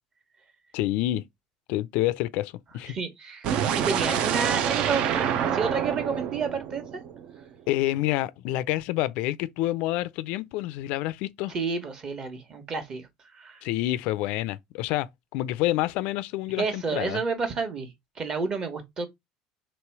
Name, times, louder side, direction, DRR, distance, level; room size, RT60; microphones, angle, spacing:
voice 1, 0.7-1.2 1.7-2.9 7.7-11.5 13.6-17.2, left 15 dB, 70° left, 0.3 m, -28 dB
voice 2, 2.9-7.0 11.5-13.6 16.6-19.1, right 5 dB, 35° right, 1.2 m, -31 dB
sound 1, 3.4-7.4, right 8 dB, 55° right, 0.5 m, -27 dB
3.1 x 3.0 x 4.6 m
cardioid pair, 130°, 2 cm